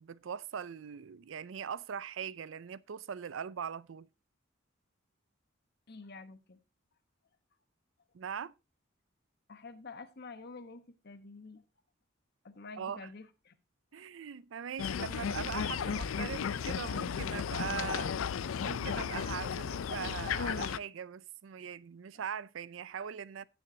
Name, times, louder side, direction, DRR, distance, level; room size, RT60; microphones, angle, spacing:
voice 1, 0.0-4.1 8.1-8.5 12.8-13.1 13.9-18.1 18.6-23.4, right 7 dB, 70° right, 0.4 m, -41 dB
voice 2, 5.9-6.6 9.5-11.6 12.4-13.5 13.9-14.3 22.1-22.2, left 3 dB, 55° left, 1.1 m, -49 dB
sound 1, 14.8-20.8, left 7 dB, 85° left, 0.4 m, -34 dB
16.0 x 7.0 x 2.7 m
head